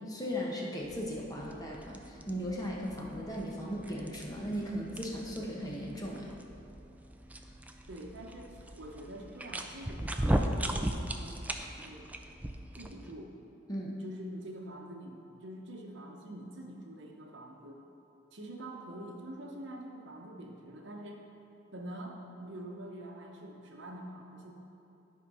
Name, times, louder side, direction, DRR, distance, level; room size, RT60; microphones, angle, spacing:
voice 1, 0.0-6.3 13.7-14.0, equal, 20° left, -3 dB, 1.2 m, -37 dB
sound 1, 0.8-13.1, right 1 dB, 10° right, 0.3 m, -38 dB
voice 2, 7.9-12.1 12.7-13.3 14.0-17.8 18.3-21.2 21.7-24.5, right 1 dB, 65° right, 1 dB, 1.0 m, -45 dB
10.5 x 4.5 x 5.5 m, 2.9 s
head